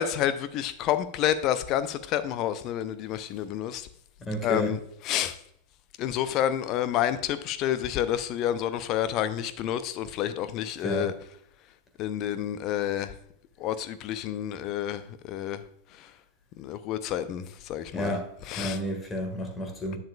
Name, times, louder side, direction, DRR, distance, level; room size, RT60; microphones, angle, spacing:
voice 1, 0.0-3.9 4.4-4.8 5.0-5.4 6.0-11.1 12.0-13.1 13.6-15.6 15.9-16.1 16.6-18.2 18.5-18.8, left 11 dB, 40° left, 0.6 m, -29 dB
voice 2, 4.2-4.7 10.8-11.1 17.9-20.0, equal, 15° left, 1.7 m, -31 dB
10.0 x 7.3 x 2.4 m
figure-of-eight pair, 90°, 0 cm